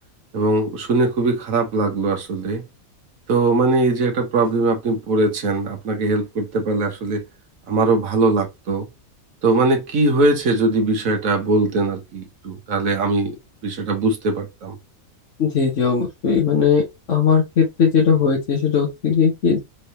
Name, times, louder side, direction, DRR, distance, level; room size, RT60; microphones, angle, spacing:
voice 1, 0.3-2.6 3.3-7.2 7.7-8.9 9.4-13.3 13.6-14.8, right 2 dB, 75° right, 1.6 m, -20 dB
voice 2, 15.4-16.8 17.1-19.6, left 6 dB, 65° left, 1.4 m, -18 dB
4.5 x 3.4 x 2.8 m
omnidirectional pair, 1.4 m